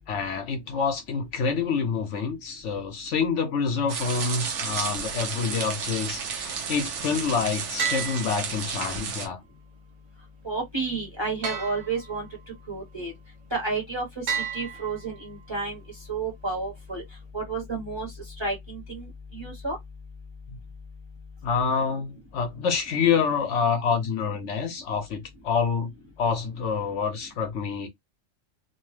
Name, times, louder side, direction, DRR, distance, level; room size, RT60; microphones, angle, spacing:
voice 1, 0.1-9.4 21.4-25.9 26.2-27.9, left 5 dB, 65° left, 0.9 m, -27 dB
sound 1, 3.9-9.3, right 6 dB, 65° right, 1.0 m, -32 dB
sound 2, 7.8-9.0 11.4-12.5 14.3-15.5, right 7 dB, 85° right, 1.2 m, -33 dB
voice 2, 10.4-12.3 12.7-13.1 13.5-15.8 16.1-17.0 17.3-18.1 18.4-19.8, right 3 dB, 25° right, 0.9 m, -31 dB
2.8 x 2.1 x 3.1 m
omnidirectional pair, 1.4 m